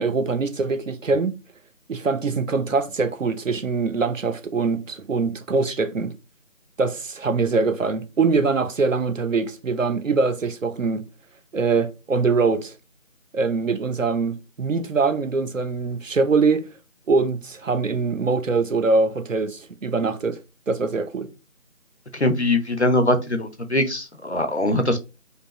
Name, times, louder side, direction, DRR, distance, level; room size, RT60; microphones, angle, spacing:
voice 1, 0.0-1.4 1.9-6.1 6.8-11.1 11.5-12.7 13.3-16.7 17.1-20.4 20.7-21.3, right 4 dB, 65° right, 0.7 m, -23 dB
voice 2, 22.1-25.0, left 1 dB, 55° left, 0.8 m, -22 dB
5.2 x 2.4 x 3.0 m
figure-of-eight pair, 180°, 41 cm